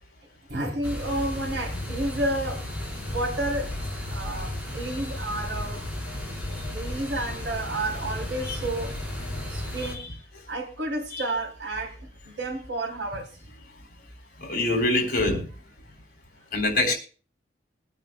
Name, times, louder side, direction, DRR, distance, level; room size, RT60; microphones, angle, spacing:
voice 1, 0.5-2.7 3.0-3.7 4.1-5.8 6.7-8.9 9.5-10.0 10.5-13.3, right 1 dB, 90° right, 3.1 m, -31 dB
sound 1, 0.8-9.9, left 1 dB, 10° right, 4.2 m, -34 dB
voice 2, 14.4-15.4 16.5-16.9, left 2 dB, 55° left, 3.5 m, -24 dB
22.5 x 9.2 x 2.2 m
head